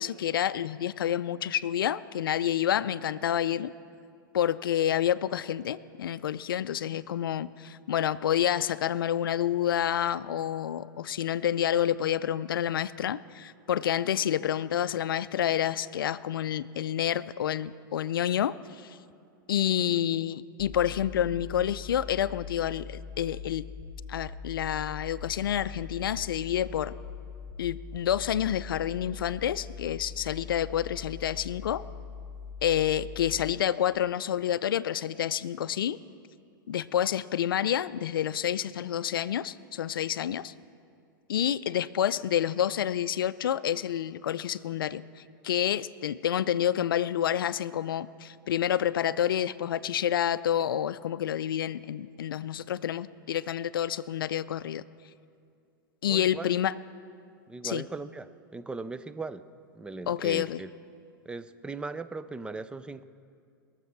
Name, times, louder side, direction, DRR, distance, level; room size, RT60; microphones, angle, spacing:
voice 1, 0.0-3.7 4.3-19.0 19.5-23.6 24.1-26.9 27.6-31.8 32.6-36.0 36.7-40.5 41.3-54.8 56.0-56.7 57.6-57.8 60.1-60.6, left 10 dB, 80° left, 17 dB, 0.4 m, -28 dB
sound 1, 20.6-33.5, left 5 dB, 40° left, 1.6 m, -42 dB
voice 2, 56.1-56.5 57.5-59.5 59.7-60.7 61.3-63.0, right 3 dB, 10° right, 13 dB, 0.5 m, -38 dB
21.5 x 7.4 x 5.9 m, 2.3 s
hypercardioid pair, 110°, 11 cm